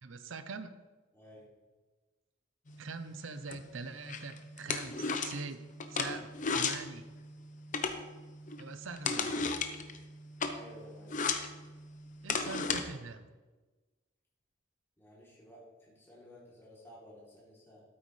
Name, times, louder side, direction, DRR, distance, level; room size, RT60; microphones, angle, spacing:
voice 1, 0.0-0.8 2.8-5.6 5.9-7.0 8.6-9.4 12.2-13.3, right 4 dB, 85° right, 10 dB, 0.6 m, -43 dB
voice 2, 1.1-1.5 10.5-11.3 15.0-17.8, equal, 10° left, -7 dB, 3.1 m, -54 dB
sound 1, 2.7-12.8, left 4 dB, 40° left, 0.7 m, -37 dB
12.5 x 8.8 x 3.2 m, 1.3 s
head